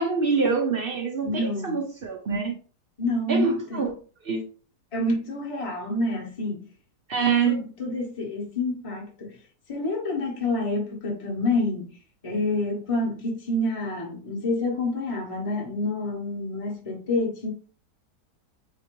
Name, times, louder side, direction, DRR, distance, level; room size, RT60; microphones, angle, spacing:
voice 1, 0.0-2.5 3.3-3.9 4.2-4.4 7.1-7.5, right 5 dB, 55° right, 0.6 m, -25 dB
voice 2, 1.2-1.8 3.0-3.8 4.9-6.6 7.4-9.4 9.7-12.0 12.2-17.5, left 2 dB, 25° left, 0.9 m, -28 dB
4.3 x 2.9 x 3.0 m
omnidirectional pair, 1.8 m